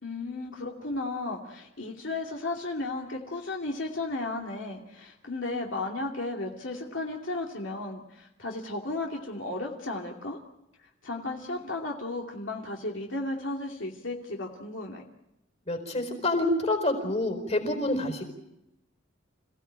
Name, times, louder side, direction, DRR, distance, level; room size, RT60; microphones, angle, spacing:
voice 1, 0.0-10.4 10.8-15.0, left 2 dB, 70° left, 0 dB, 2.6 m, -34 dB
voice 2, 15.7-18.2, left 1 dB, 35° left, 6 dB, 4.5 m, -27 dB
28.0 x 16.5 x 8.9 m, 0.88 s
head